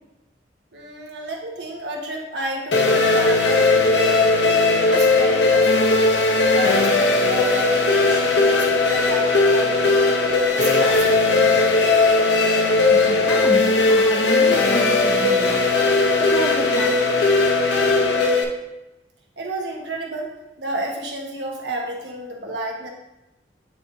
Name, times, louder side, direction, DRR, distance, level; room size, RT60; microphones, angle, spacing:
voice 1, 0.7-4.5 4.9-6.0 6.5-10.1 10.5-11.6 19.4-22.9, right 1 dB, 80° right, 0 dB, 1.2 m, -31 dB
sound 1, 2.7-18.4, left 3 dB, 80° left, 0.7 m, -18 dB
voice 2, 12.9-13.6 13.9-15.6 16.2-17.1, equal, 15° left, 2 dB, 0.6 m, -30 dB
8.5 x 4.2 x 2.7 m, 0.95 s
head